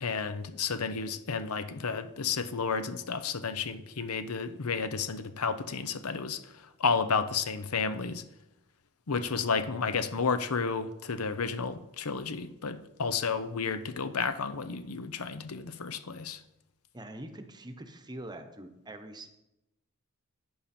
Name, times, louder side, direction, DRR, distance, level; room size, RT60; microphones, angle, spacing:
voice 1, 0.0-6.4 6.8-8.2 9.1-16.4, left 5 dB, 80° left, 11 dB, 0.8 m, -32 dB
voice 2, 16.9-19.3, right 1 dB, 20° right, 7 dB, 0.9 m, -44 dB
11.0 x 8.6 x 4.3 m, 0.91 s
head